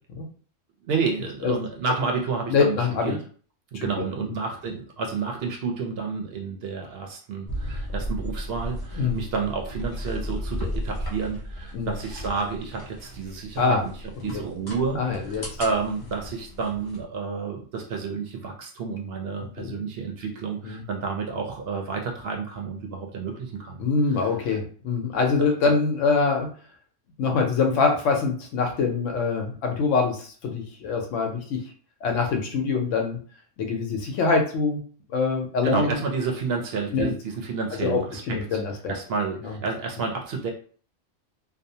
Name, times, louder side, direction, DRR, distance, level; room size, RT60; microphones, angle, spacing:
voice 1, 0.9-3.2 3.7-13.9 14.2-15.0 15.2-23.8 24.1-24.3 25.4-25.7 35.6-38.6 38.9-40.5, right 5 dB, 65° right, 2 dB, 0.7 m, -30 dB
voice 2, 2.5-3.1 3.7-4.4 9.0-9.2 11.7-11.9 13.6-13.8 14.9-15.6 19.6-19.7 20.6-20.8 23.8-26.5 27.2-31.6 32.0-33.2 33.6-34.8 35.1-36.0 36.9-37.1 37.8-38.0 38.3-38.9 39.4-39.6, left 4 dB, 85° left, 2 dB, 1.0 m, -24 dB
sound 1, 7.5-17.0, equal, 35° left, 0.4 m, -35 dB
2.6 x 2.0 x 2.7 m, 0.43 s
omnidirectional pair, 1.3 m